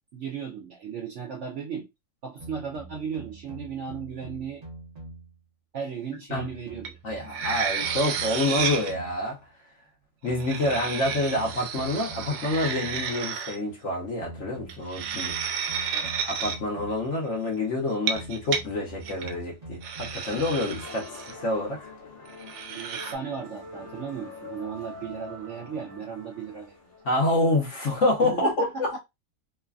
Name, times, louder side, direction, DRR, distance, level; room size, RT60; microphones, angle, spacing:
voice 1, 0.1-1.9 2.2-4.6 5.7-7.0 7.4-7.5 15.9-16.1 22.7-26.8 28.2-29.0, right 7 dB, 65° right, 0.7 m, -36 dB
sound 1, 2.4-5.4 6.3-9.3 10.3-13.3 14.2-17.2 18.1-20.8, right 2 dB, 30° right, 0.8 m, -44 dB
sound 2, 6.9-7.0 7.3-8.9 10.3-13.6 14.7-16.6 17.9-18.6 19.0-19.3 19.8-21.3 22.4-23.1, right 7 dB, 90° right, 1.2 m, -31 dB
voice 2, 7.0-9.4 10.2-15.3 16.2-21.9 27.0-29.0, left 2 dB, 55° left, 1.1 m, -27 dB
sound 3, 20.8-27.4, left 2 dB, 35° left, 1.0 m, -44 dB
3.1 x 2.3 x 2.3 m
omnidirectional pair, 1.7 m